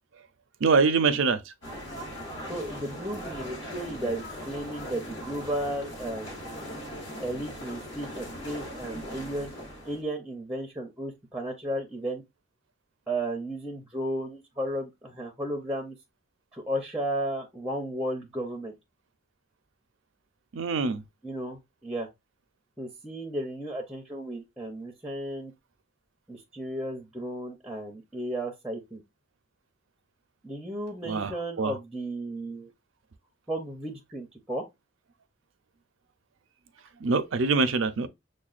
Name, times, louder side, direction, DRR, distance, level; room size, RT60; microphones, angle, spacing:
voice 1, 0.6-1.4 20.5-21.0 31.1-31.3 31.6-31.7 37.0-38.1, right 4 dB, 85° right, 0.5 m, -24 dB
sound 1, 1.6-10.0, equal, 65° left, 1.6 m, -39 dB
voice 2, 2.5-6.4 7.2-9.5 9.8-12.2 13.1-16.0 16.5-18.8 21.2-22.1 22.8-25.5 26.3-29.0 30.4-32.7 33.5-34.6, right 1 dB, 5° right, 0.6 m, -34 dB
6.4 x 2.2 x 2.4 m
head